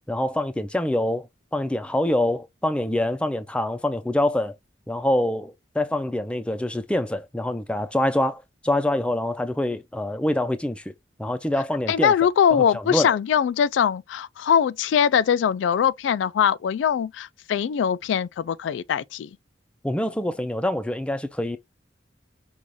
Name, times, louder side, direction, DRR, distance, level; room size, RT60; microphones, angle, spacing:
voice 1, 0.1-1.3 1.5-4.5 4.9-10.8 11.2-12.1 12.5-13.1 19.8-21.6, left 1 dB, 5° left, 0.4 m, -25 dB
voice 2, 11.9-19.3, left 8 dB, 80° left, 0.3 m, -22 dB
5.3 x 2.4 x 3.1 m
head